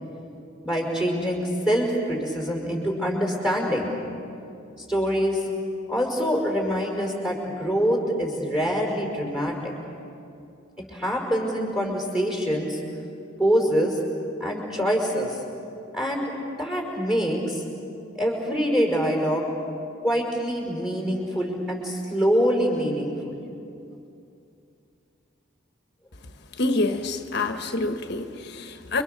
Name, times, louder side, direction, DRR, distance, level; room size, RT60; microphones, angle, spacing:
voice 1, 0.6-3.9 4.9-5.4 5.9-9.7 10.8-12.8 13.4-14.0 14.4-15.4 15.9-16.3 16.6-17.6 18.1-19.4 20.0-23.4, equal, 5° right, 0 dB, 5.3 m, -25 dB
voice 2, 26.6-29.0, left 2 dB, 55° left, 6 dB, 1.3 m, -27 dB
29.5 x 25.0 x 6.8 m, 2.6 s
head